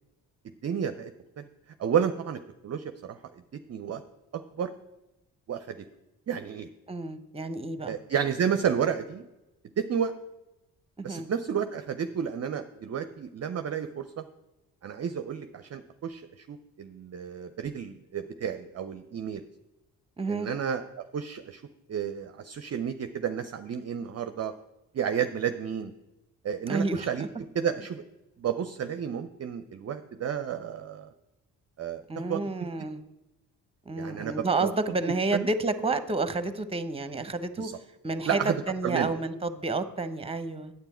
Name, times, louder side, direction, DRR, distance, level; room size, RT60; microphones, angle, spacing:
voice 1, 0.6-1.1 1.4-1.5 1.8-4.0 4.3-4.7 5.5-5.8 6.3-6.7 7.9-9.3 9.8-10.2 11.0-14.2 14.8-19.4 20.3-21.6 21.9-24.5 24.9-25.9 26.4-27.3 27.5-28.0 28.4-31.1 31.8-32.4 34.0-34.7 35.3-35.5 37.6-37.8 38.3-38.6 38.8-39.2, right 8 dB, 30° right, 10 dB, 0.6 m, -31 dB
voice 2, 6.9-8.0 11.0-11.3 20.2-20.5 26.7-27.1 32.1-33.0 33.9-37.7 38.0-38.4 38.7-40.7, right 3 dB, 10° right, 11 dB, 0.9 m, -30 dB
9.0 x 8.3 x 4.3 m, 0.96 s
hypercardioid pair, 40°, 49 cm